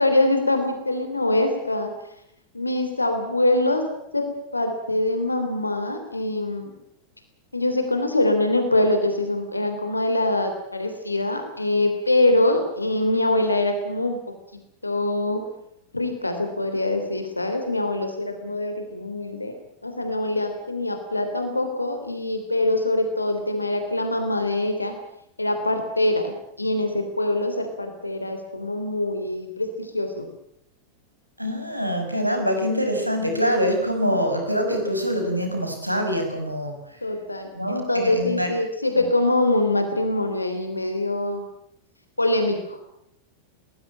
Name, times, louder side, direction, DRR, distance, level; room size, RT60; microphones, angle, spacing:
voice 1, 0.0-1.9 2.5-3.9 4.1-6.7 7.5-14.2 14.8-15.4 15.9-19.6 19.8-24.9 25.4-30.3 37.0-41.5 42.2-42.8, left 1 dB, 85° left, 6 dB, 3.2 m, -24 dB
voice 2, 31.4-36.7 37.5-38.5, equal, 90° right, 4 dB, 5.8 m, -24 dB
22.5 x 19.5 x 9.0 m, 0.79 s
figure-of-eight pair, 90°, 0 cm